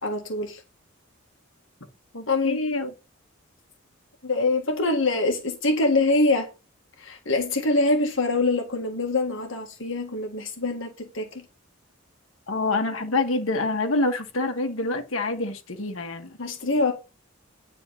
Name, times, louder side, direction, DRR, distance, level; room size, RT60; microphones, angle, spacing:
voice 1, 0.0-0.6 2.3-2.6 4.2-6.5 7.0-11.4 16.4-16.9, left 2 dB, 65° left, 1.7 m, -24 dB
voice 2, 2.1-2.9 12.5-16.3, left 2 dB, 90° left, 1.7 m, -26 dB
10.0 x 4.2 x 5.6 m
head